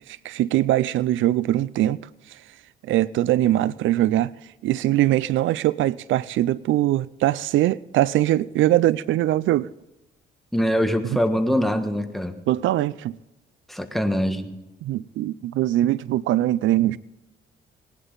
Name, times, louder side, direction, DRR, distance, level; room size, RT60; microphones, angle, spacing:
voice 1, 0.1-2.0 2.3-2.4 2.9-4.3 4.6-9.7 11.1-11.2 12.5-13.1 14.8-17.0, right 14 dB, 75° right, 0.4 m, -22 dB
voice 2, 10.5-12.4 13.7-14.5, equal, ahead, 1.4 m, -23 dB
19.0 x 11.0 x 4.0 m
cardioid pair, 90°, 20 cm